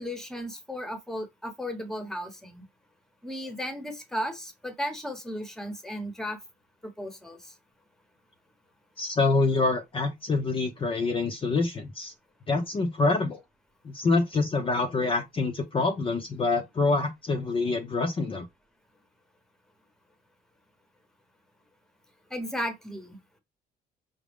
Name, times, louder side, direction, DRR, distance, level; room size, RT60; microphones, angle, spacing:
voice 1, 0.0-2.7 3.2-6.4 6.8-7.6 22.3-23.4, equal, 5° left, 1.0 m, -35 dB
voice 2, 9.0-12.1 12.5-13.4 13.8-18.5, left 3 dB, 30° left, 0.7 m, -26 dB
5.0 x 2.2 x 3.5 m
cardioid pair, 110°, 17 cm